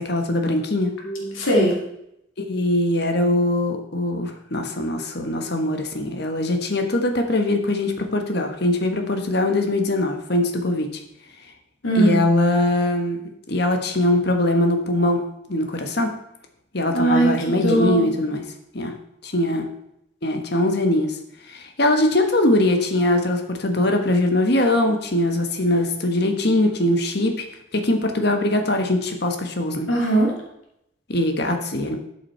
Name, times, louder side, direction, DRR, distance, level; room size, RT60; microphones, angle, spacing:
voice 1, 0.0-0.9 2.5-11.0 11.9-16.2 16.7-18.4 18.7-18.9 19.2-19.7 20.2-21.2 21.5-27.4 27.7-29.9 31.1-32.0, left 1 dB, 50° left, 5 dB, 1.4 m, -22 dB
voice 2, 1.0-1.8 11.8-12.2 16.9-18.0 29.9-30.3, right 1 dB, 80° left, -2 dB, 2.4 m, -20 dB
11.5 x 6.4 x 4.5 m, 0.80 s
head